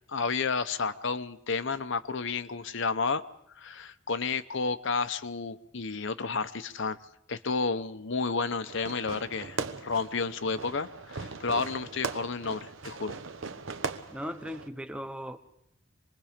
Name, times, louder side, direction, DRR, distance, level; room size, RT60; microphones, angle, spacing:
voice 1, 0.1-3.2 3.6-7.0 7.3-13.2, left 4 dB, 60° left, 11 dB, 0.8 m, -31 dB
Fireworks, 8.7-14.7, right 4 dB, 65° right, 1.1 m, -39 dB
voice 2, 14.1-15.4, equal, 5° right, 8 dB, 1.0 m, -37 dB
26.5 x 21.0 x 5.1 m, 0.75 s
head